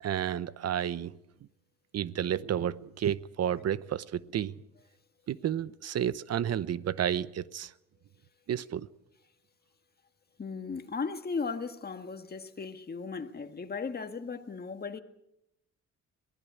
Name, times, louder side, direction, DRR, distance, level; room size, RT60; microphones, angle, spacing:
voice 1, 0.0-1.2 1.9-4.5 5.3-7.7 8.5-8.9, right 10 dB, 55° right, 0.9 m, -31 dB
voice 2, 10.4-15.0, left 5 dB, 30° left, 1.8 m, -36 dB
22.5 x 16.0 x 8.3 m
cardioid pair, 90°, 30 cm